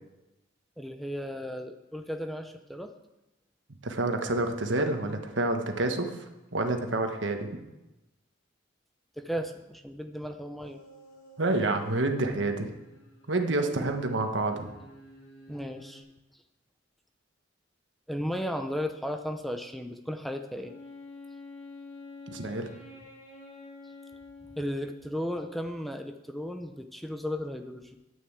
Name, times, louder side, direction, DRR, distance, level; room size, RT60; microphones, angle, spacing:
voice 1, 0.8-2.9 9.2-10.8 13.6-13.9 15.5-16.0 18.1-20.7 24.6-28.0, equal, ahead, 6 dB, 0.6 m, -35 dB
voice 2, 3.8-6.1 6.5-7.5 11.4-12.7 13.3-14.7 22.3-22.7, right 2 dB, 70° right, 5 dB, 1.4 m, -28 dB
sound 1, 10.6-12.0 12.3-16.0, equal, 90° left, 4.3 m, -54 dB
Wind instrument woodwind instrument, 20.6-25.4, left 3 dB, 35° left, 2.3 m, -47 dB
9.5 x 9.1 x 8.1 m, 0.99 s
head